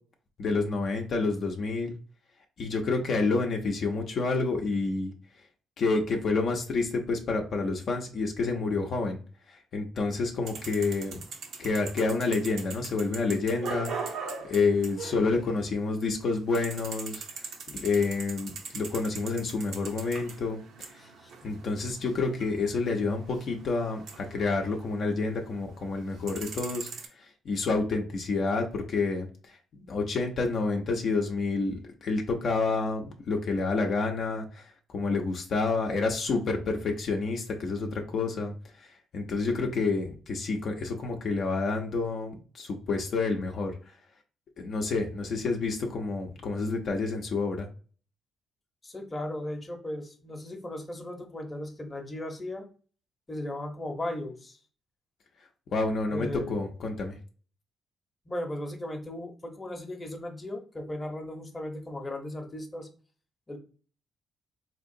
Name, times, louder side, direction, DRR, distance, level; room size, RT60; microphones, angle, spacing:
voice 1, 0.4-1.9 2.6-5.1 5.8-9.2 9.5-11.2 11.6-20.6 21.4-26.9 27.2-29.3 29.7-43.7 44.6-47.7 55.7-57.2, left 3 dB, 60° left, 2 dB, 0.6 m, -29 dB
sound 1, 10.5-25.5 25.9-27.1, right 5 dB, 75° right, 0.6 m, -41 dB
voice 2, 21.0-21.3 48.8-52.6 53.3-54.6 56.1-56.7 58.3-62.9 63.5-63.6, left 1 dB, 20° left, 3 dB, 0.8 m, -37 dB
3.7 x 2.9 x 2.6 m, 0.39 s
cardioid pair, 105°, 0 cm